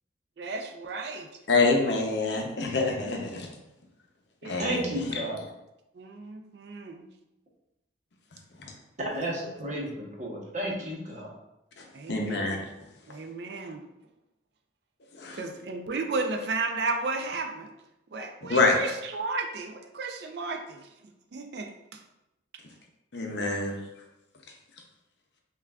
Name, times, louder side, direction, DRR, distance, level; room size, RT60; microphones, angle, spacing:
voice 1, 0.4-1.4 1.9-2.0 3.0-3.1 4.4-4.7 5.9-7.1 11.9-12.4 13.1-13.8 15.3-17.7 18.1-20.9 21.3-22.0 23.3-23.6, right 3 dB, 55° right, 4 dB, 0.4 m, -34 dB
voice 2, 1.5-3.5 4.4-5.2 11.8-12.6 15.1-15.4 18.5-18.8 23.1-23.8, left 3 dB, 65° left, 2 dB, 0.6 m, -26 dB
voice 3, 4.6-5.4 9.1-11.3, right 1 dB, 40° right, -3 dB, 0.9 m, -32 dB
5.6 x 2.4 x 2.3 m, 0.90 s
head